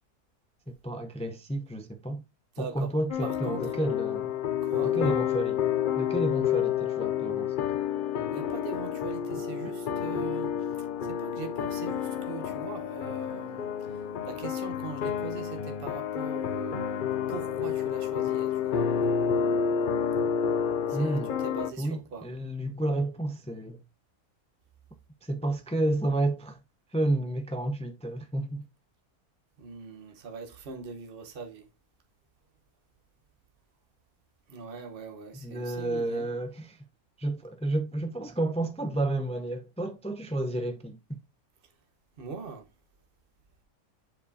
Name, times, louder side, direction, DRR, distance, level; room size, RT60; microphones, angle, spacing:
voice 1, 0.7-2.2 2.6-4.3 4.8-5.6 6.0-7.8 20.9-21.3 21.8-23.8 25.2-26.6 26.9-28.7 35.3-36.8 37.2-41.2, right 1 dB, 10° left, 0.3 m, -31 dB
voice 2, 2.6-2.9 3.2-3.6 4.6-5.2 8.3-10.5 11.0-13.6 14.2-18.9 20.9-21.2 21.4-22.3 29.6-31.7 34.5-36.3 42.2-42.7, right 5 dB, 40° right, 1.2 m, -41 dB
sound 1, 3.1-21.7, left 8 dB, 80° left, 0.4 m, -29 dB
7.7 x 4.7 x 2.7 m
omnidirectional pair, 1.6 m